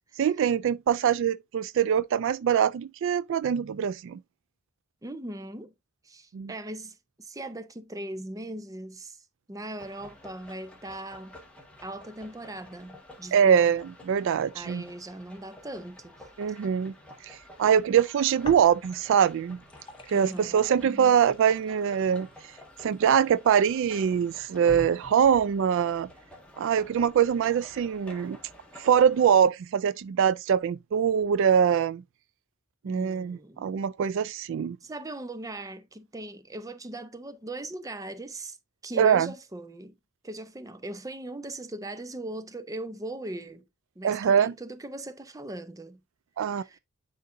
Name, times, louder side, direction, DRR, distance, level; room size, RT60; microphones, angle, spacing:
voice 1, 0.2-4.2 6.3-6.5 13.3-14.8 16.4-16.9 17.2-19.6 20.1-22.3 22.8-26.1 26.6-28.4 28.8-32.0 32.8-34.8 39.0-39.3 44.0-44.5 46.4-46.6, right 8 dB, 65° right, 0.3 m, -23 dB
voice 2, 5.0-5.7 6.0-11.4 11.8-13.7 14.5-16.3 20.1-21.2 32.8-33.9 34.8-38.6 38.8-40.0 40.2-43.6 44.0-46.0 46.4-46.8, right 1 dB, 15° right, 0.6 m, -39 dB
sound 1, 9.8-29.4, left 1 dB, 5° left, 1.6 m, -51 dB
sound 2, 18.4-19.2 19.5-23.5 24.1-24.2 24.7-25.6, left 2 dB, 25° left, 1.1 m, -45 dB
10.0 x 3.9 x 2.6 m
head